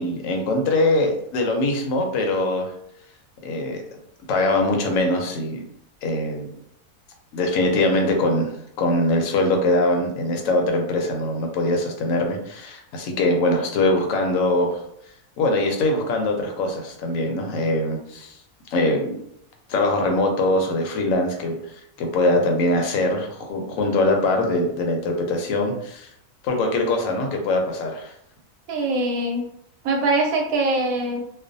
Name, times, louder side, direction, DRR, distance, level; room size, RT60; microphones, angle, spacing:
voice 1, 0.0-2.7 3.4-3.8 4.3-5.6 6.0-6.5 7.3-14.8 15.4-18.4 18.7-19.2 19.7-21.6 22.0-26.1 26.4-28.1, left 2 dB, 70° left, 2 dB, 0.9 m, -22 dB
voice 2, 28.7-29.5 29.8-31.2, right 2 dB, 75° right, 2 dB, 1.0 m, -22 dB
2.4 x 2.1 x 2.6 m, 0.73 s
omnidirectional pair, 1.5 m